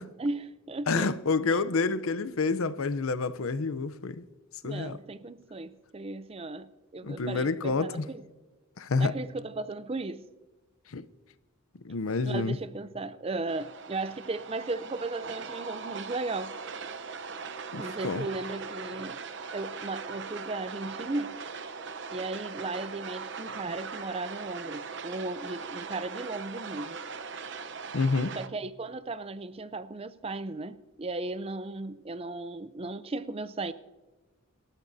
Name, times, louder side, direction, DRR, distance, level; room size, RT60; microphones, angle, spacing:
voice 1, 0.2-1.6 4.6-8.3 9.0-10.3 12.2-16.6 17.8-19.2 19.5-21.4 22.1-27.0 28.3-33.7, right 2 dB, 25° right, 0.5 m, -36 dB
voice 2, 0.9-4.2 4.6-5.0 7.0-8.0 8.8-9.1 10.9-11.0 11.8-12.6 17.7-18.2 27.9-28.3, left 4 dB, 75° left, 0.6 m, -28 dB
sound 1, 13.5-28.5, right 5 dB, 55° right, 0.8 m, -40 dB
25.5 x 13.5 x 2.7 m
head